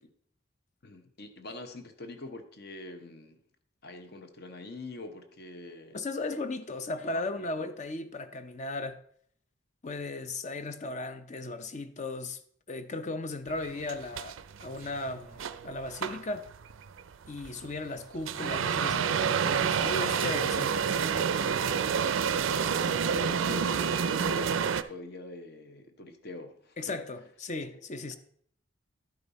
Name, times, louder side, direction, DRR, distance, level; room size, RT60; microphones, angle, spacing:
voice 1, 0.8-3.4 3.8-6.0 7.1-7.7 23.0-27.0, left 2 dB, 50° left, 0.9 m, -44 dB
voice 2, 5.9-9.0 9.8-12.4 12.7-16.5 17.3-20.9 26.8-28.2, left 2 dB, 35° left, 0.6 m, -36 dB
sound 1, 13.5-24.8, right 7 dB, 75° right, 0.4 m, -29 dB
12.0 x 5.3 x 4.1 m
head